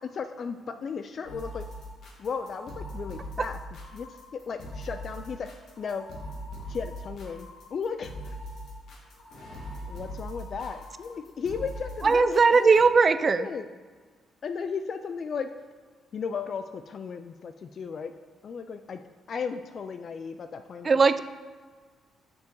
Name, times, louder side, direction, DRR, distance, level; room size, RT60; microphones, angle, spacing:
voice 1, 0.0-1.6 2.2-3.6 3.9-4.1 4.3-5.5 5.8-6.1 6.7-8.4 9.9-12.3 12.6-13.7 14.4-15.5 16.1-18.1 18.4-19.0 19.3-20.9, left 6 dB, 50° left, 8 dB, 0.4 m, -35 dB
sound 1, 1.2-12.8, equal, 65° left, 1.9 m, -41 dB
voice 2, 12.0-13.5 20.8-21.2, right 4 dB, 35° right, 13 dB, 0.4 m, -19 dB
6.9 x 5.5 x 4.6 m, 1.5 s
cardioid pair, 90°, 0 cm